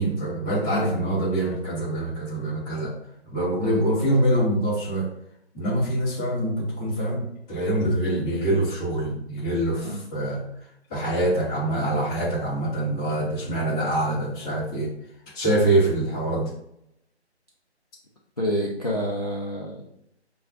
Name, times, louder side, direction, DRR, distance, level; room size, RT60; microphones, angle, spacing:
voice 1, 0.0-2.9 3.2-5.1 5.5-10.4 10.9-14.9 15.3-16.5, right 1 dB, 5° left, -16 dB, 0.8 m, -25 dB
voice 2, 18.4-19.9, equal, 35° left, -3 dB, 0.5 m, -28 dB
5.4 x 2.3 x 2.5 m, 0.78 s
figure-of-eight pair, 150°, 34 cm